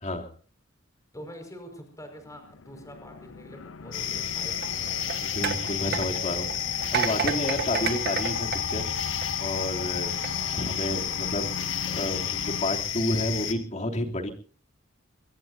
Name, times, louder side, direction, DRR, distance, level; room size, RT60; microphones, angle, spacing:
voice 1, 1.1-5.0 10.3-10.7, equal, 15° left, 5 dB, 5.4 m, -45 dB
sound 1, 2.0-12.7, left 5 dB, 90° left, 0.8 m, -38 dB
sound 2, 3.9-13.5, left 9 dB, 70° left, 2.1 m, -31 dB
sound 3, 4.5-9.5 10.0-10.3, right 7 dB, 55° right, 1.4 m, -32 dB
voice 2, 5.2-8.8 9.4-10.1 10.5-14.3, left 1 dB, 40° left, 2 dB, 3.1 m, -31 dB
24.5 x 21.0 x 2.8 m, 0.41 s
head